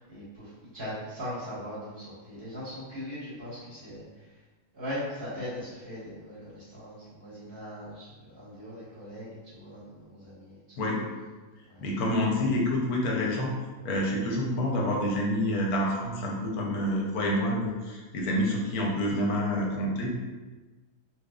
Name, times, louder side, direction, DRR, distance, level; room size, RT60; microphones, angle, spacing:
voice 1, 0.0-4.0 4.7-10.8 11.6-11.8, equal, 35° right, -10 dB, 1.6 m, -40 dB
voice 2, 10.8-11.1 11.8-13.5 13.8-20.2, left 1 dB, 80° left, -1 dB, 1.2 m, -28 dB
4.0 x 3.0 x 2.3 m, 1.2 s
omnidirectional pair, 1.6 m